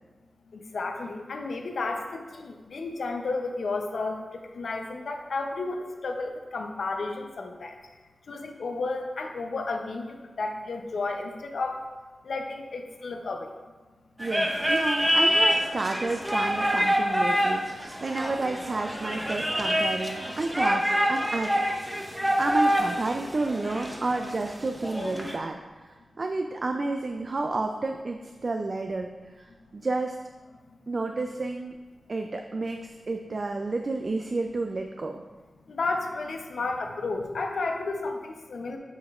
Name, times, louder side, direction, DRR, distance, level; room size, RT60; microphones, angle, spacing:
voice 1, 0.5-7.8 8.3-11.8 12.2-13.5 35.7-38.8, left 3 dB, 75° left, 4 dB, 0.6 m, -32 dB
sound 1, 14.2-25.4, equal, 5° right, 0.7 m, -26 dB
voice 2, 14.2-21.6 22.4-30.2 30.9-31.7 32.1-35.2, right 3 dB, 45° right, 4 dB, 0.3 m, -31 dB
7.8 x 5.1 x 2.4 m, 1.3 s
wide cardioid pair, 115°, 0 cm